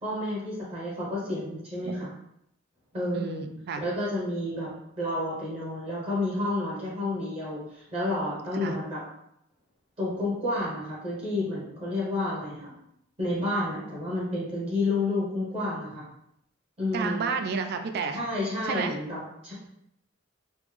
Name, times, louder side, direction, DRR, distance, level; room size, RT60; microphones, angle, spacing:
voice 1, 0.0-2.1 2.9-3.5 3.8-9.0 10.0-12.7 13.2-16.1 16.8-17.3 18.1-19.5, left 1 dB, 30° right, -6 dB, 0.9 m, -30 dB
voice 2, 3.1-3.8 8.5-8.8 16.9-18.2 18.6-19.0, right 5 dB, 50° right, 6 dB, 0.3 m, -31 dB
3.1 x 2.0 x 3.3 m, 0.78 s
head